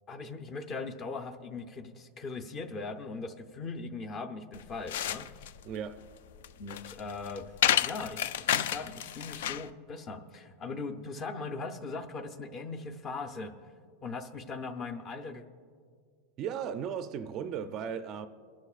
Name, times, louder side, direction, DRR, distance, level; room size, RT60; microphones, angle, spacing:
voice 1, 0.1-5.5 6.6-7.5 7.8-13.5 14.0-15.4, left 3 dB, 25° left, 8 dB, 0.6 m, -39 dB
sound 1, 4.5-9.7, left 11 dB, 75° left, 0.4 m, -31 dB
voice 2, 5.6-6.0 16.4-18.3, right 8 dB, 30° right, 10 dB, 0.4 m, -36 dB
22.5 x 11.5 x 2.4 m, 2.1 s
supercardioid pair, 165°, 0 cm